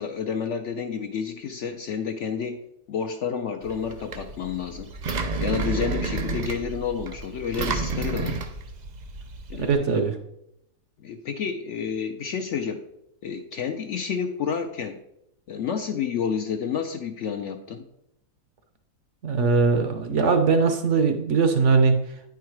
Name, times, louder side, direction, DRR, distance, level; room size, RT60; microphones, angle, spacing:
voice 1, 0.0-2.6 2.9-4.9 5.4-8.4 9.5-10.1 11.0-12.8 13.2-15.0 15.5-17.8, left 6 dB, 65° left, 6 dB, 0.8 m, -30 dB
Engine, 3.6-9.7, right 3 dB, 85° right, 0.3 m, -31 dB
voice 2, 9.5-10.2 19.2-22.0, right 4 dB, 60° right, 7 dB, 0.9 m, -20 dB
9.4 x 4.7 x 4.6 m, 0.81 s
omnidirectional pair, 1.7 m